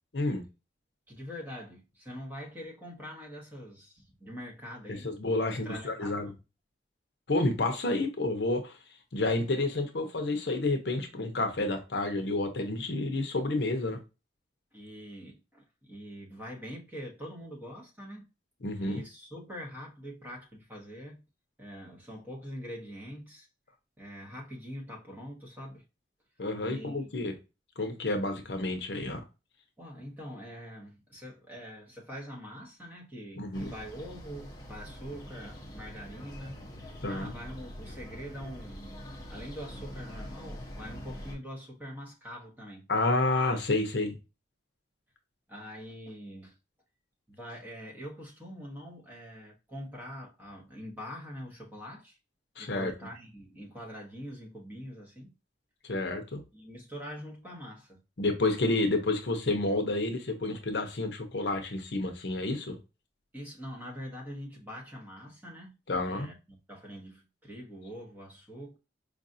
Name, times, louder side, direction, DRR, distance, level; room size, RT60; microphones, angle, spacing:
voice 1, 1.1-5.1 5.5-6.3 14.7-18.3 18.8-21.2 21.6-23.5 24.0-25.8 26.6-27.3 29.8-36.6 37.1-38.9 39.3-42.9 45.5-46.6 47.3-52.2 52.6-55.3 56.5-58.0 63.3-65.7 66.0-68.8, equal, 10° right, 1.0 m, -44 dB
voice 2, 5.0-6.3 7.3-8.8 9.1-14.0 18.6-19.0 26.4-27.3 27.8-29.2 33.4-33.7 37.0-37.3 42.9-44.2 52.6-52.9 55.8-56.4 58.2-62.8 65.9-66.3, left 2 dB, 60° left, 0.7 m, -30 dB
sound 1, 33.5-41.4, equal, 20° left, 0.9 m, -44 dB
4.8 x 2.5 x 2.6 m
head